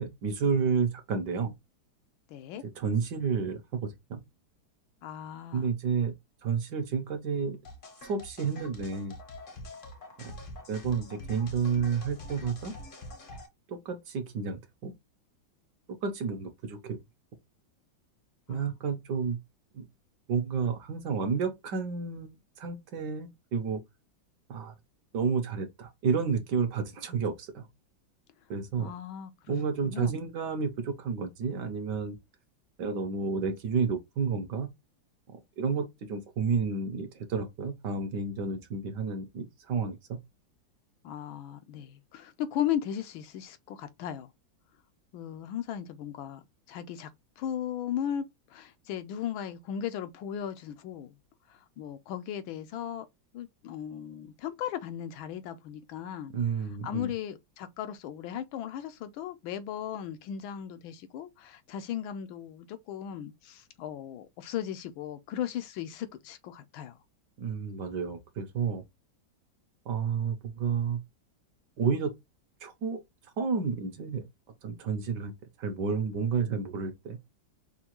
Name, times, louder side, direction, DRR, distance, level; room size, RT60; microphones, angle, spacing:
voice 1, 0.0-1.5 2.8-4.2 5.5-6.1 6.4-7.6 8.0-9.2 10.2-10.3 10.7-12.7 13.7-14.9 16.0-17.0 18.5-19.4 19.7-19.8 20.3-22.3 22.6-23.8 24.5-24.7 25.1-27.7 28.5-28.9 29.5-32.2 32.8-34.7 35.6-40.2 56.3-57.1 67.4-68.8 69.9-71.0 71.8-72.1 72.6-73.0 73.4-74.3 74.6-75.3 75.6-77.2, right 5 dB, 65° right, 1.2 m, -30 dB
voice 2, 2.3-2.6 5.0-5.7 18.5-18.6 28.8-30.2 41.0-44.3 45.1-46.4 46.7-47.1 47.4-48.2 48.5-51.1 51.8-53.1 53.3-56.3 56.8-67.0, left 10 dB, 80° left, 1.4 m, -36 dB
sound 1, 7.6-13.5, left 1 dB, 45° left, 0.7 m, -45 dB
5.7 x 2.3 x 2.9 m
omnidirectional pair, 2.2 m